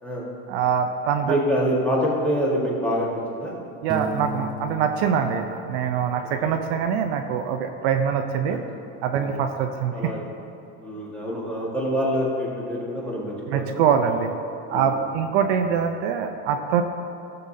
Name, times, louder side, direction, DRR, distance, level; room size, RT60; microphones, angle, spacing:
voice 1, 0.5-1.4 3.8-8.6 9.0-9.9 13.5-14.3 14.7-16.8, right 7 dB, 60° right, 5 dB, 0.7 m, -24 dB
voice 2, 1.2-3.5 6.4-6.5 8.5-8.6 9.2-9.4 9.9-10.2 10.8-13.8 14.7-14.9, equal, 5° left, -6 dB, 1.6 m, -26 dB
Piano, 3.9-6.6, right 1 dB, 15° right, 0.5 m, -35 dB
17.0 x 6.9 x 2.8 m, 2.8 s
cardioid pair, 170°, 35 cm